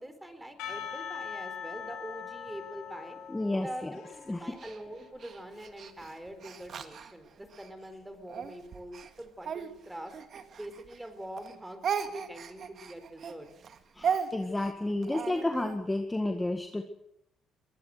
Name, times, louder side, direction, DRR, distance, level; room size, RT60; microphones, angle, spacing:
voice 1, 0.0-3.2 3.6-10.1 10.5-13.5, right 1 dB, 10° right, 9 dB, 4.3 m, -44 dB
Percussion / Church bell, 0.6-5.6, left 7 dB, 90° left, 4.4 m, -42 dB
voice 2, 3.3-3.9 4.3-4.5 14.0-16.8, left 2 dB, 10° left, 5 dB, 1.9 m, -31 dB
Speech, 4.6-7.7 8.3-11.1 11.4-15.8, right 7 dB, 50° right, 2.0 m, -37 dB
23.0 x 19.0 x 6.7 m, 0.79 s
cardioid pair, 105°, 0 cm